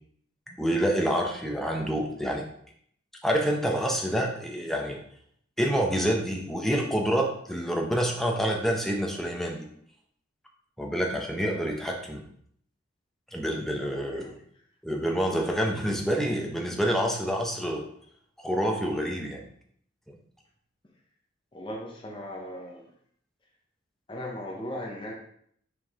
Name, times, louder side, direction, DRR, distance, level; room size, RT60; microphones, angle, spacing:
voice 1, 0.5-2.4 3.2-5.0 5.6-9.7 10.8-12.2 13.3-14.4 14.8-17.8 18.4-19.4 20.1-20.2, equal, ahead, 0 dB, 0.8 m, -27 dB
voice 2, 21.5-22.9 24.1-25.1, left 1 dB, 25° left, -2 dB, 1.0 m, -37 dB
6.3 x 4.6 x 3.6 m, 0.65 s
head